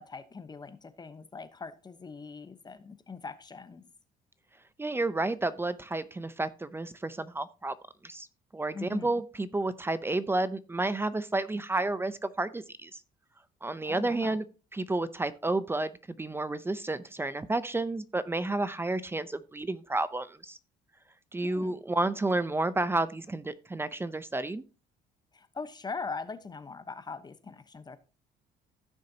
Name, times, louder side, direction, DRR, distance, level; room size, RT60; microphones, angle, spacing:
voice 1, 0.0-3.8 8.7-9.1 13.8-14.4 21.4-21.8 25.3-28.0, left 4 dB, 25° left, 1.0 m, -41 dB
voice 2, 4.8-7.7 8.0-8.3 8.5-13.0 13.6-14.4 14.7-20.6 21.3-24.6, right 2 dB, 15° right, 0.6 m, -31 dB
15.5 x 6.4 x 2.8 m
cardioid pair, 110°, 17 cm